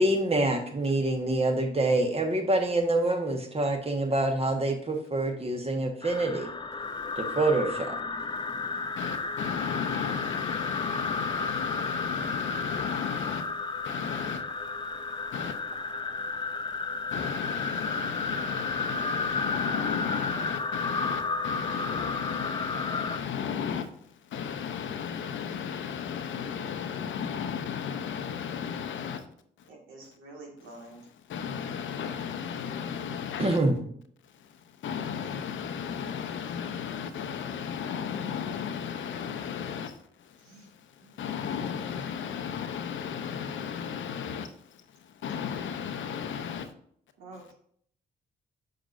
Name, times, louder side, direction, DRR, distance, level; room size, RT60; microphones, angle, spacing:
voice 1, 0.0-6.5 7.2-7.9 33.4-33.8, right 2 dB, 30° right, 4 dB, 1.4 m, -26 dB
sound 1, 6.0-23.2, left 4 dB, 20° left, 0.6 m, -32 dB
voice 2, 8.4-15.9 16.2-29.3 29.6-29.7 30.6-33.6 34.3-46.7, left 7 dB, 65° left, 9 dB, 0.7 m, -35 dB
voice 3, 29.7-31.0 40.4-40.7 41.0-41.1 47.2-47.5, right 2 dB, 75° right, 0 dB, 1.8 m, -47 dB
6.6 x 6.3 x 2.6 m, 0.63 s
hypercardioid pair, 50°, 21 cm